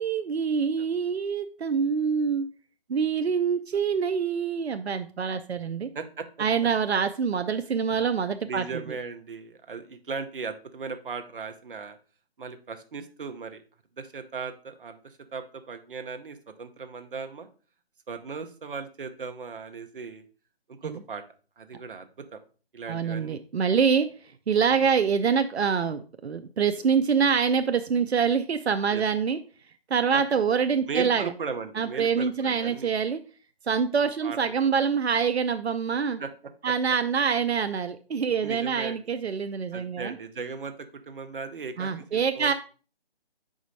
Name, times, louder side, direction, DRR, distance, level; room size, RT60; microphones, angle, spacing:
voice 1, 0.0-2.5 2.9-5.9 6.4-9.0 20.8-21.0 22.9-24.1 24.5-29.4 29.9-31.3 31.7-33.2 33.6-36.2 36.6-40.1 41.8-42.5, right 6 dB, 90° right, 9 dB, 0.6 m, -25 dB
voice 2, 5.9-6.3 8.5-12.0 12.4-13.6 14.0-17.5 18.1-20.2 20.8-21.2 21.6-22.4 22.7-23.4 24.7-24.9 28.9-29.0 30.1-30.2 30.9-32.9 34.2-34.7 36.2-36.3 38.4-39.0 39.7-40.7 41.1-42.5, right 5 dB, 55° right, 7 dB, 0.9 m, -37 dB
6.1 x 5.0 x 4.0 m, 0.38 s
figure-of-eight pair, 165°, 31 cm